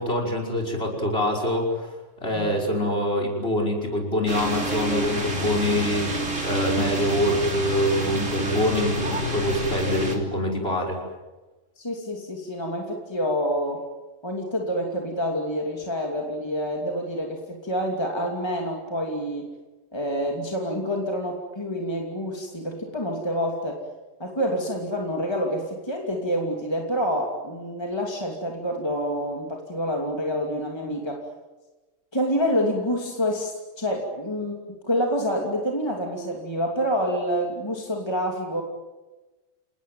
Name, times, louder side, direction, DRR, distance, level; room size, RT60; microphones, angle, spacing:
voice 1, 0.0-1.9 2.2-6.1 6.4-11.0, left 1 dB, 50° left, 2 dB, 6.0 m, -25 dB
sound 1, 4.3-10.2, right 1 dB, 70° right, 3.9 m, -28 dB
voice 2, 11.8-13.8 14.2-19.5 19.9-23.8 24.2-31.2 32.1-38.6, equal, 20° left, 1 dB, 2.8 m, -27 dB
29.0 x 19.0 x 9.4 m, 1.2 s
omnidirectional pair, 1.3 m